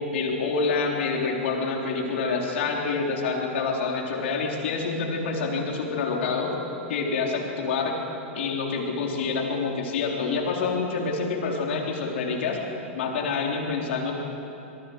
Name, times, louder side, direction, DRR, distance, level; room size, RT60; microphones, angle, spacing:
voice 1, 0.0-6.5 6.9-8.0 8.4-12.6 12.9-14.1, left 4 dB, 65° left, 0 dB, 3.8 m, -27 dB
26.0 x 22.5 x 4.8 m, 2.9 s
hypercardioid pair, 95°, 7 cm